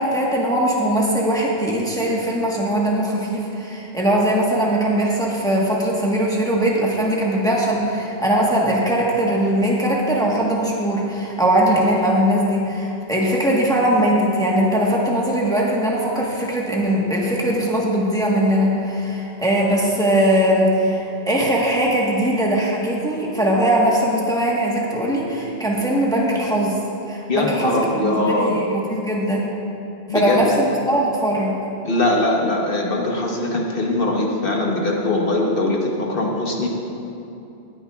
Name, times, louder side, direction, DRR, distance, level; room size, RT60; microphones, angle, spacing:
voice 1, 0.0-26.8 27.0-29.5 30.1-31.6, right 1 dB, 5° left, -3 dB, 1.2 m, -20 dB
voice 2, 27.3-28.6 30.1-30.4 31.8-36.7, left 2 dB, 60° left, -1 dB, 1.4 m, -21 dB
18.0 x 9.5 x 2.4 m, 2.8 s
omnidirectional pair, 1.1 m